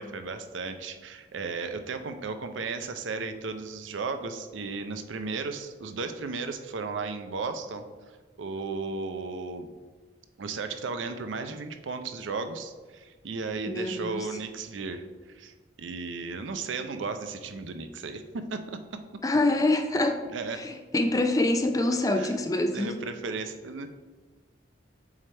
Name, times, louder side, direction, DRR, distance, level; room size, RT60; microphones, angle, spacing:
voice 1, 0.0-7.9 8.4-9.7 10.4-18.8 20.3-20.6 22.2-22.3 22.7-23.9, right 4 dB, 85° right, 8 dB, 0.5 m, -35 dB
voice 2, 13.7-14.3 19.2-20.3 20.5-23.0, left 2 dB, 20° left, 6 dB, 0.4 m, -25 dB
7.2 x 3.3 x 4.3 m, 1.3 s
head